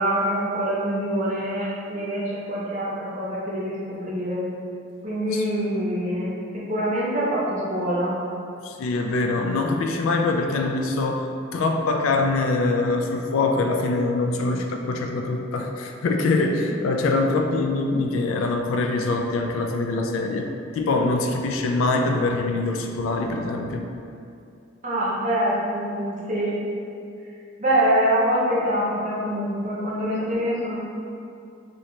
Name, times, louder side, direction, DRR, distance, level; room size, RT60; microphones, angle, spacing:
voice 1, 0.0-4.5 5.0-8.1 24.8-26.5 27.6-30.8, equal, 35° right, -7 dB, 0.7 m, -25 dB
voice 2, 8.6-20.5 20.7-23.8, left 3 dB, 85° left, 3 dB, 0.3 m, -24 dB
2.8 x 2.7 x 3.1 m, 2.5 s
head